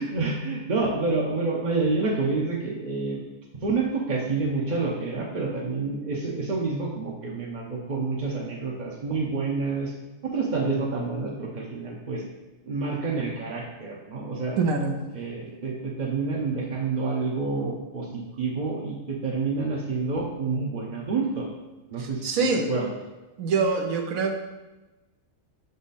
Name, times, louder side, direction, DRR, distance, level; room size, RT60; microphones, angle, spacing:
voice 1, 0.0-3.2 3.6-9.9 10.2-12.2 12.7-14.6 15.1-21.5 21.9-22.9, right 3 dB, 40° right, -3 dB, 0.7 m, -28 dB
voice 2, 14.6-14.9 22.0-22.7 23.4-24.3, right 4 dB, 80° right, 3 dB, 1.1 m, -24 dB
6.1 x 4.0 x 4.0 m, 1.1 s
omnidirectional pair, 1.4 m